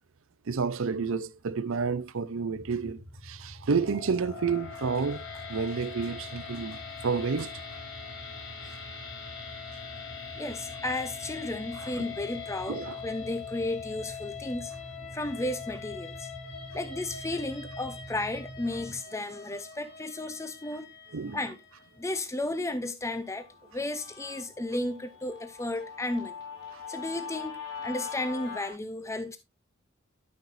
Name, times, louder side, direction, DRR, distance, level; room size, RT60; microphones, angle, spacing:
voice 1, 0.5-5.2 5.5-7.6 11.8-12.1 12.7-13.0 21.1-21.4 26.7-26.8, right 5 dB, 65° right, 0.6 m, -30 dB
sound 1, 2.5-19.0, right 1 dB, 50° right, 1.6 m, -47 dB
sound 2, 3.7-22.0, left 6 dB, 80° left, 3.3 m, -43 dB
voice 2, 10.4-14.7 15.1-16.3 16.7-20.9 21.3-21.6 22.0-23.5 23.7-26.3 26.9-29.4, left 2 dB, 15° left, 0.6 m, -33 dB
Guitar, 23.2-28.7, left 6 dB, 50° left, 4.4 m, -42 dB
12.0 x 5.9 x 2.6 m
head